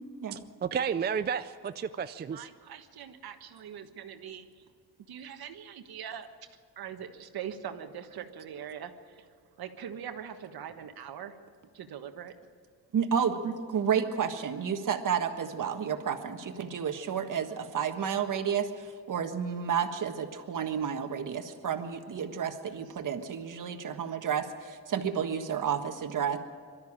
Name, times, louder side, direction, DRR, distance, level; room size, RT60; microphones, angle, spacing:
voice 1, 0.3-2.5, right 7 dB, 25° right, 11 dB, 0.4 m, -32 dB
voice 2, 2.3-4.5 5.1-6.3 6.8-9.3 9.6-11.4 11.7-12.3, right 8 dB, 70° right, 7 dB, 1.4 m, -42 dB
voice 3, 12.9-26.4, right 7 dB, 55° right, 7 dB, 1.6 m, -31 dB
22.5 x 13.0 x 8.8 m, 2.1 s
cardioid pair, 120°, 38 cm